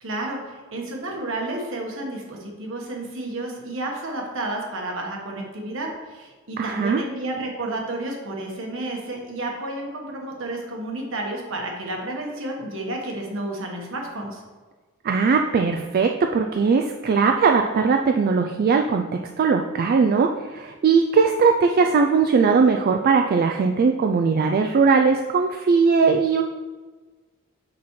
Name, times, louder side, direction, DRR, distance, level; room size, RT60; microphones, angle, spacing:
voice 1, 0.0-14.4, right 2 dB, 65° right, 0 dB, 1.3 m, -31 dB
voice 2, 6.6-7.0 15.0-19.1 19.4-26.4, right 5 dB, 45° right, 4 dB, 0.3 m, -19 dB
6.0 x 5.9 x 3.1 m, 1.3 s
head